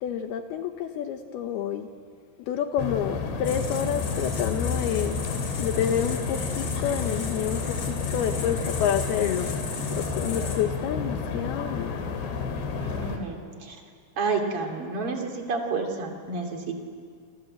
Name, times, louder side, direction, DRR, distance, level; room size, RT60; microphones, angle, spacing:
voice 1, 0.0-1.9 2.4-5.2 5.6-9.5 9.9-11.9, left 9 dB, 80° left, 7 dB, 2.3 m, -29 dB
sound 1, 2.8-13.2, left 5 dB, 60° left, 4.2 m, -31 dB
sound 2, 3.4-10.6, left 4 dB, 40° left, 4.5 m, -35 dB
voice 2, 12.8-13.8 14.2-16.8, right 4 dB, 35° right, 2 dB, 2.8 m, -30 dB
27.5 x 27.0 x 7.8 m, 2.1 s
omnidirectional pair, 5.7 m